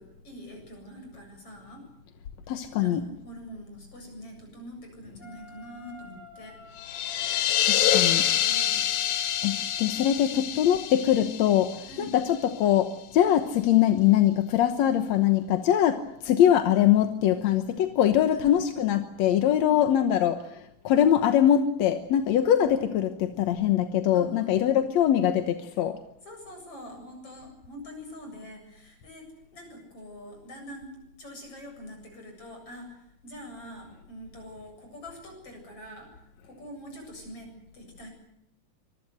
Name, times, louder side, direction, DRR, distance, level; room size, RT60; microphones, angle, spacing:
voice 1, 0.0-1.8 2.8-7.0 8.3-8.8 11.9-12.1 18.3-18.5 19.6-19.8 20.9-21.1 22.5-22.7 24.1-24.8 26.2-30.9 31.2-36.1 36.4-38.1, equal, 40° left, 4 dB, 8.7 m, -44 dB
voice 2, 2.5-3.0 7.6-8.3 9.4-26.0, left 10 dB, 65° left, 8 dB, 2.0 m, -23 dB
Wind instrument woodwind instrument, 5.2-10.4, equal, 20° left, 7.1 m, -49 dB
sound 1, 6.8-12.4, left 11 dB, 90° left, 3.2 m, -26 dB
25.5 x 21.0 x 7.8 m, 0.79 s
omnidirectional pair, 4.1 m